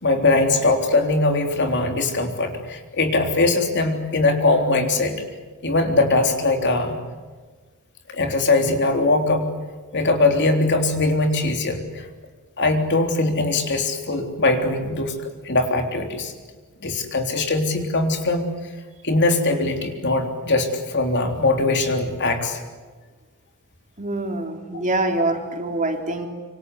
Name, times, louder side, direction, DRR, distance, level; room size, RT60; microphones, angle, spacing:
voice 1, 0.0-5.2 5.6-7.0 8.1-9.5 9.9-12.1 12.6-15.2 15.4-16.3 16.8-18.4 19.0-22.6, left 2 dB, 55° left, 4 dB, 3.6 m, -21 dB
voice 2, 24.0-26.3, right 2 dB, 35° right, 3 dB, 3.7 m, -25 dB
27.0 x 25.5 x 8.2 m, 1.4 s
head